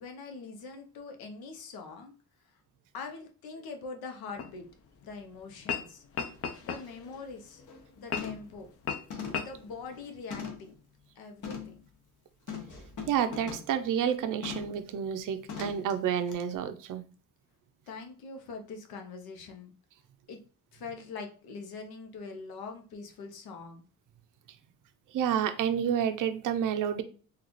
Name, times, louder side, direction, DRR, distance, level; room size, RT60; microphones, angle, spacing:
voice 1, 0.0-2.1 2.9-4.6 5.0-6.0 6.6-7.6 8.0-8.7 9.4-10.8 11.2-11.8 17.9-19.7 20.3-20.4 20.7-23.8, left 4 dB, 80° left, 4 dB, 0.7 m, -43 dB
sound 1, 4.4-4.5 5.5-5.9 6.1-7.2 8.1-8.4 8.8-9.0 9.3-9.5, left 6 dB, 40° left, 0.5 m, -34 dB
sound 2, 6.4-6.5 6.9-7.1 7.5-7.8 8.2-8.6 9.1-10.8 11.4-11.8 12.5-13.8 14.4-14.8 15.5-15.9 16.3-16.4, left 6 dB, 55° left, 0.9 m, -41 dB
voice 2, 13.1-17.0 25.1-27.0, right 9 dB, 60° right, 9 dB, 0.5 m, -29 dB
3.8 x 2.3 x 3.0 m, 0.39 s
cardioid pair, 95°, 36 cm